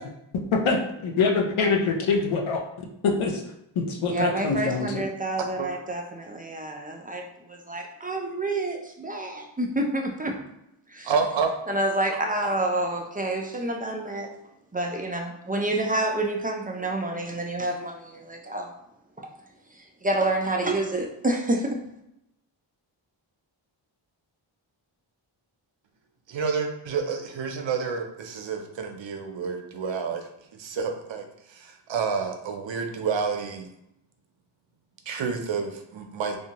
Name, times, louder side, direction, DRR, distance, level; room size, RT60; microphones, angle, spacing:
voice 1, 0.5-3.4 3.8-5.0, left 4 dB, 75° left, 2 dB, 0.6 m, -25 dB
voice 2, 4.1-10.4 10.9-11.1 11.7-14.3 14.7-18.7 19.2-19.3 19.7-21.8, right 1 dB, 20° right, 1 dB, 0.3 m, -28 dB
voice 3, 11.0-11.5 26.3-30.3 30.6-33.7 35.1-36.4, right 5 dB, 70° right, 5 dB, 0.5 m, -29 dB
2.7 x 2.2 x 2.8 m, 0.81 s
wide cardioid pair, 70°, 48 cm